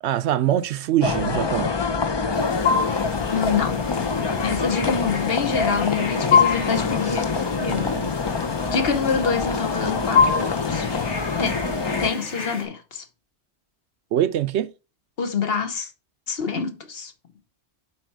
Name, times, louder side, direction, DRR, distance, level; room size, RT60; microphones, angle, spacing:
voice 1, 0.0-1.8 4.8-4.9 7.7-8.1 14.1-14.7, right 12 dB, 75° right, 0.9 m, -24 dB
sound 1, 1.0-12.1, left 4 dB, 35° left, 0.5 m, -25 dB
sound 2, 2.3-12.6, left 6 dB, 85° left, 2.1 m, -27 dB
voice 2, 3.3-3.9 4.4-7.3 7.6-7.8 8.7-10.9 11.4-11.5 12.0-13.0 15.2-15.9 16.3-17.1, left 6 dB, 60° left, 1.2 m, -26 dB
7.8 x 4.4 x 4.6 m
omnidirectional pair, 1.1 m